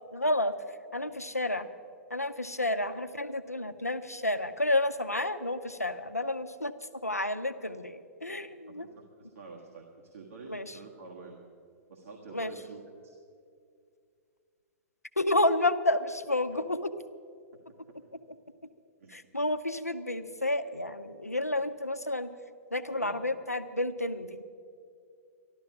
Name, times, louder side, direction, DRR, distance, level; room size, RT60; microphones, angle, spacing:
voice 1, 0.1-1.7 2.1-8.9 10.5-10.8 12.3-12.5 15.2-16.9 19.1-22.3 22.7-24.4, left 1 dB, 90° left, 10 dB, 0.6 m, -30 dB
voice 2, 8.7-11.4 11.9-13.1 17.9-18.0 19.0-19.3 22.9-23.1, right 4 dB, 65° right, -1 dB, 1.6 m, -48 dB
13.5 x 12.0 x 6.0 m, 2.3 s
figure-of-eight pair, 105°, 8 cm